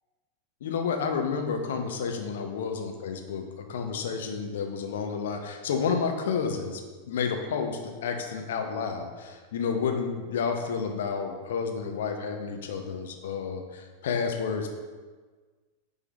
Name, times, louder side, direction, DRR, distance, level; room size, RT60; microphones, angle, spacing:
voice 1, 0.6-6.8 7.1-14.7, left 6 dB, 60° left, 4 dB, 0.7 m, -30 dB
8.9 x 3.8 x 3.1 m, 1.4 s
figure-of-eight pair, 90°, 0 cm